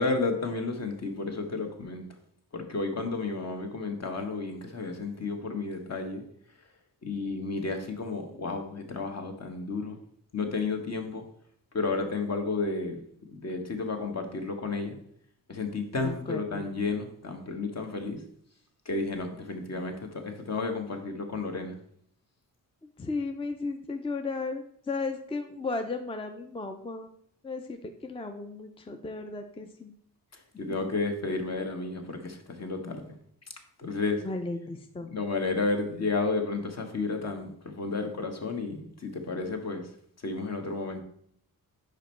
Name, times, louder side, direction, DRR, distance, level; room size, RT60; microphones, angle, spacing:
voice 1, 0.0-2.1 2.5-6.2 7.0-10.0 10.3-11.2 11.7-13.0 13.3-15.0 15.5-18.2 18.8-21.8 30.6-33.0 33.8-34.2 35.0-39.8 40.2-41.0, left 3 dB, 45° left, 5 dB, 1.1 m, -32 dB
voice 2, 16.0-16.6 19.8-19.9 23.0-27.1 27.4-30.0 34.2-35.1, left 3 dB, 15° left, 6 dB, 0.5 m, -35 dB
5.2 x 5.0 x 4.4 m, 0.66 s
cardioid pair, 90°, 35 cm